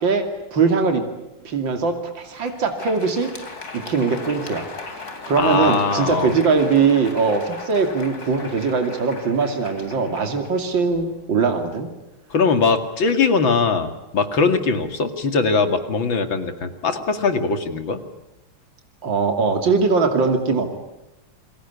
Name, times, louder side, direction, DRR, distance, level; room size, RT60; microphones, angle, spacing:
voice 1, 0.0-1.0 1.4-3.3 3.7-4.6 5.3-11.9 19.0-20.7, right 5 dB, 65° right, 6 dB, 3.4 m, -21 dB
Crowd, 2.2-11.2, left 3 dB, 45° left, 3.8 m, -38 dB
voice 2, 5.4-6.3 12.3-18.0, left 4 dB, 70° left, 8 dB, 3.0 m, -21 dB
29.0 x 22.0 x 8.5 m, 0.93 s
omnidirectional pair, 2.2 m